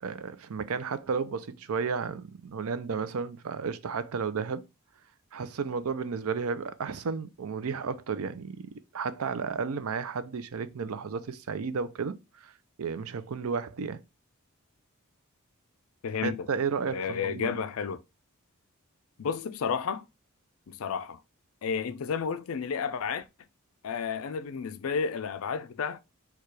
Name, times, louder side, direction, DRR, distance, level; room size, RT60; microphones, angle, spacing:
voice 1, 0.0-4.6 5.3-12.2 12.4-12.5 12.8-14.0 16.2-17.5, right 5 dB, 80° right, 0.5 m, -33 dB
voice 2, 16.0-16.5 16.9-18.0 19.2-20.1 20.7-21.2 21.6-23.3 23.8-26.0, left 6 dB, 75° left, 0.4 m, -31 dB
4.6 x 2.3 x 4.7 m
head